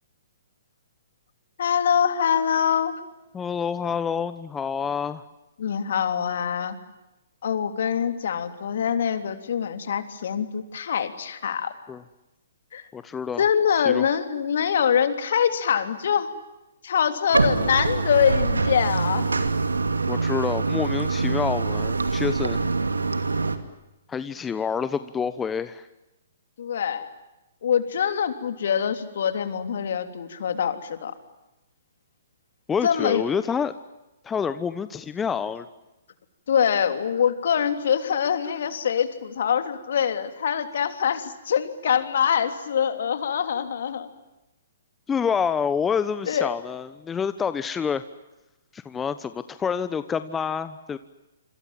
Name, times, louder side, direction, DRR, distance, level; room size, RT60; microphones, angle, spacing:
voice 1, 1.6-2.9 5.6-6.8 7.4-11.7 12.7-12.8 13.4-16.3 16.8-19.3 26.6-27.1 27.6-31.1 32.8-33.3 36.5-44.1 46.2-46.5, left 8 dB, 60° left, 9 dB, 3.2 m, -24 dB
voice 2, 3.3-5.2 11.9-12.0 12.9-13.4 13.9-14.1 20.1-22.6 24.1-25.9 32.7-33.7 34.2-35.7 45.1-48.0 48.7-51.0, left 6 dB, 15° left, 12 dB, 1.0 m, -27 dB
Bathtub (filling or washing), 17.3-23.6, right 3 dB, 90° right, 2.6 m, -24 dB
27.5 x 26.0 x 7.6 m, 0.97 s
hypercardioid pair, 130°, 0 cm